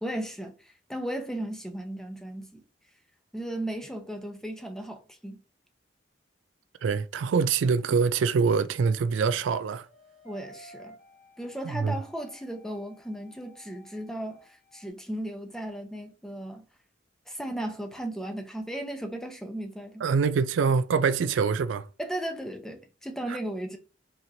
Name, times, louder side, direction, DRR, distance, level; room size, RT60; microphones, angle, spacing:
voice 1, 0.0-2.6 3.3-5.4 10.2-11.0 11.4-16.7 17.3-20.1 22.0-23.8, right 1 dB, 5° left, 0.6 m, -36 dB
voice 2, 6.8-9.9 11.6-11.9 20.0-21.9 23.3-23.4, right 5 dB, 80° right, 0.4 m, -25 dB
sound 1, 9.8-14.9, equal, 45° left, 1.0 m, -54 dB
4.2 x 3.0 x 2.6 m
head